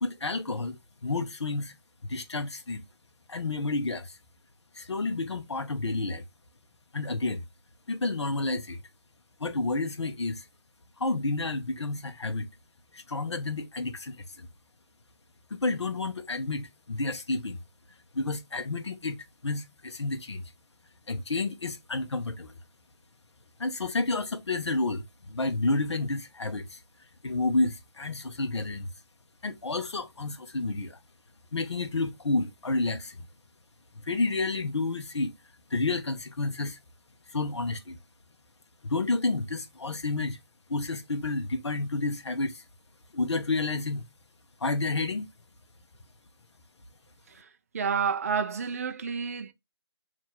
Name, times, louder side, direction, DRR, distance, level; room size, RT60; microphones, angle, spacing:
voice 1, 0.0-1.7 2.0-2.8 3.3-4.2 4.7-6.2 6.9-7.4 7.9-8.8 9.4-10.4 11.0-12.5 12.9-14.5 15.5-17.6 18.1-20.4 21.1-22.5 23.6-26.8 27.2-28.9 29.4-31.0 31.5-33.3 34.1-35.3 35.7-36.8 37.3-38.0 38.8-40.4 40.7-42.6 43.1-44.0 44.6-45.3, left 3 dB, 80° left, 0.8 m, -30 dB
voice 2, 47.7-49.5, right 6 dB, 35° right, 0.3 m, -30 dB
2.9 x 2.5 x 4.3 m
figure-of-eight pair, 160°, 14 cm